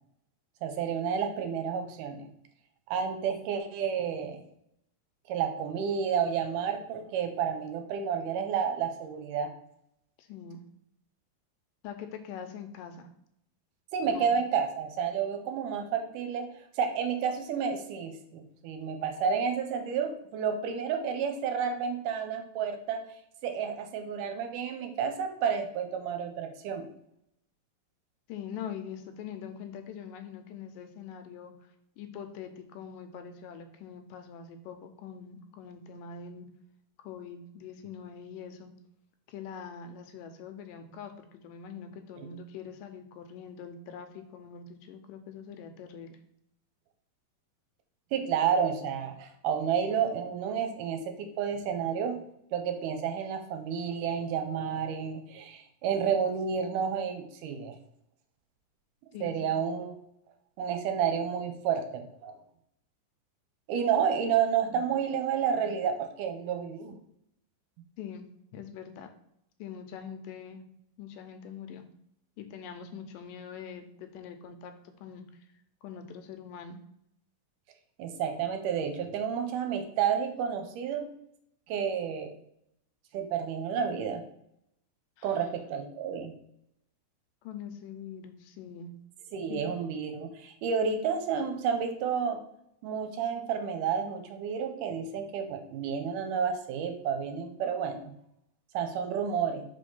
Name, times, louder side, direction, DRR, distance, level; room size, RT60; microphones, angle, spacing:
voice 1, 0.6-2.3 2.9-4.4 5.3-9.5 13.9-16.5 16.8-23.0 23.4-26.9 42.2-42.3 48.1-52.2 52.5-57.7 59.2-59.9 60.6-62.3 63.7-67.0 78.0-81.1 81.7-82.3 83.1-84.2 85.2-86.3 89.3-92.4 92.8-98.0 98.7-99.7, right 7 dB, 80° right, 6 dB, 2.1 m, -30 dB
voice 2, 10.2-10.6 11.8-13.1 14.0-14.3 28.3-31.5 32.0-36.5 37.0-38.7 39.3-46.2 59.1-59.6 68.0-68.3 68.5-69.1 69.6-70.6 71.0-71.9 72.4-74.7 75.0-75.3 75.8-76.8 85.2-85.5 87.4-88.9 89.5-89.6, left 7 dB, 85° left, 7 dB, 2.2 m, -43 dB
5.1 x 3.5 x 5.4 m, 0.75 s
omnidirectional pair, 3.9 m